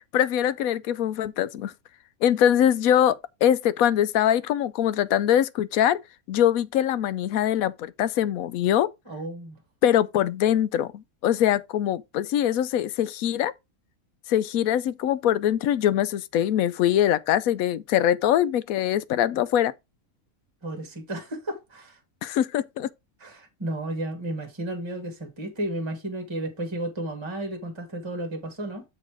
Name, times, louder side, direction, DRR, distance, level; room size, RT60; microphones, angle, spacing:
voice 1, 0.1-1.7 2.2-6.0 6.3-8.9 9.8-13.5 14.3-19.7 22.2-22.9, left 10 dB, 75° left, 1.0 m, -23 dB
voice 2, 9.1-9.6 20.6-22.0 23.2-28.8, right 1 dB, 20° right, 1.4 m, -33 dB
7.3 x 4.2 x 4.6 m
omnidirectional pair, 1.6 m